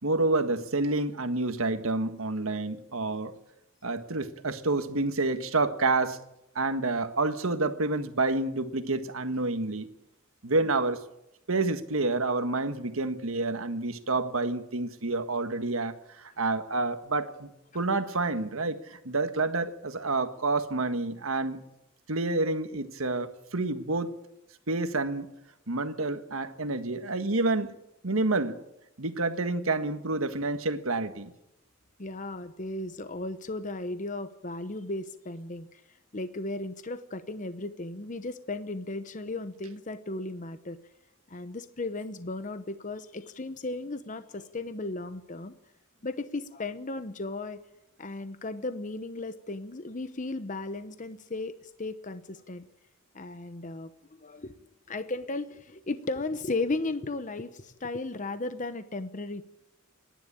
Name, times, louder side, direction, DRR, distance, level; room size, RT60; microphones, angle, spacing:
voice 1, 0.0-3.3 3.8-6.2 6.5-9.9 10.4-11.0 11.5-17.5 17.7-21.6 22.1-24.1 24.7-25.3 25.7-27.7 28.0-28.6 29.0-31.3, right 3 dB, 85° right, 9 dB, 1.6 m, -28 dB
voice 2, 32.0-40.8 41.3-45.5 46.0-47.6 48.0-52.7 53.1-54.6 54.9-59.5, left 2 dB, 35° left, 11 dB, 0.9 m, -35 dB
27.5 x 11.0 x 8.8 m, 0.87 s
head